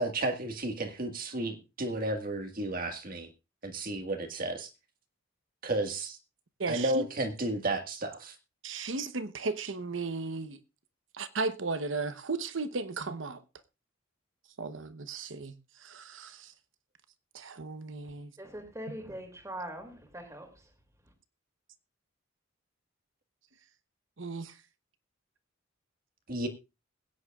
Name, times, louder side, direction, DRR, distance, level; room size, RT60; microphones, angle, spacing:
voice 1, 0.0-3.3 3.6-4.7 5.6-6.2 6.7-8.3 26.3-26.5, right 2 dB, 45° right, 1.7 m, -32 dB
voice 2, 6.6-7.1 8.6-10.6 11.1-13.4 14.6-16.5 17.3-18.3 18.9-19.0 24.2-24.6, right 3 dB, 70° right, 1.0 m, -35 dB
voice 3, 18.4-20.6, right 1 dB, 15° right, 2.6 m, -42 dB
21.5 x 9.6 x 2.4 m
head